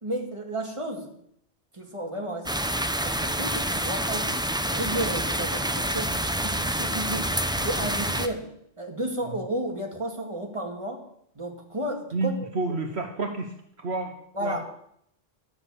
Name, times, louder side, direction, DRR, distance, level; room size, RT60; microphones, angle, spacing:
voice 1, 0.0-1.1 1.7-2.5 2.8-4.4 4.7-8.5 8.8-11.0 11.4-12.8 14.3-14.7, right 1 dB, 25° right, 1 dB, 2.2 m, -33 dB
sound 1, 2.5-8.3, right 1 dB, 5° right, 0.5 m, -27 dB
voice 2, 12.1-13.5 13.8-14.1 14.4-14.6, right 3 dB, 60° right, 3 dB, 1.5 m, -29 dB
13.5 x 7.9 x 6.9 m, 0.72 s
omnidirectional pair, 1.2 m